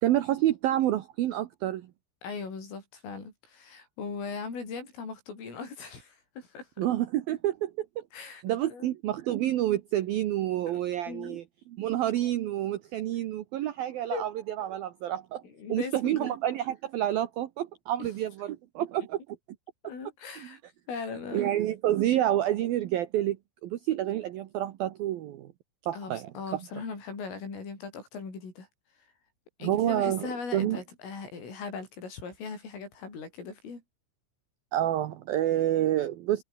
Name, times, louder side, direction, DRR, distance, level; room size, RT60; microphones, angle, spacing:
voice 1, 0.0-1.9 6.8-8.0 8.4-15.4 15.7-19.2 20.4-20.5 21.3-23.4 23.6-25.5 25.8-26.6 29.6-30.8 34.7-36.4, right 13 dB, 90° right, 2.1 m, -28 dB
voice 2, 2.2-6.7 8.1-8.9 10.7-10.8 11.1-11.4 14.1-14.2 15.4-16.4 18.0-18.1 19.8-20.6 20.9-21.5 25.9-28.7 29.6-33.8, left 5 dB, 75° left, 10.5 m, -39 dB
omnidirectional pair, 5.8 m